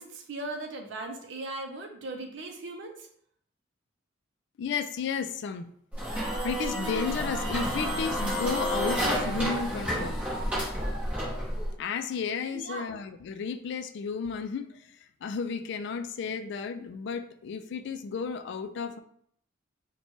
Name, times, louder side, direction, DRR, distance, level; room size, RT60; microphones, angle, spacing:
voice 1, 0.0-3.1 12.5-12.9, right 2 dB, 65° right, 3 dB, 0.5 m, -38 dB
voice 2, 4.6-5.7 6.4-10.2 11.8-19.0, left 6 dB, 60° left, 9 dB, 0.3 m, -33 dB
sound 1, 5.9-11.7, equal, 5° right, 0.9 m, -30 dB
4.2 x 2.2 x 3.0 m, 0.66 s
head